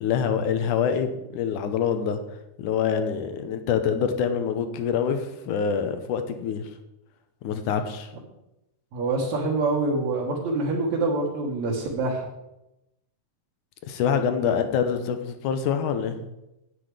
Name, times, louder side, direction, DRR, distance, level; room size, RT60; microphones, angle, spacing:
voice 1, 0.0-2.2 2.6-6.6 7.4-8.1 13.9-16.2, left 7 dB, 75° left, 8 dB, 2.3 m, -25 dB
voice 2, 8.9-12.3 14.4-14.5, right 3 dB, 60° right, -4 dB, 2.8 m, -26 dB
10.0 x 9.1 x 4.9 m, 0.90 s
omnidirectional pair, 3.7 m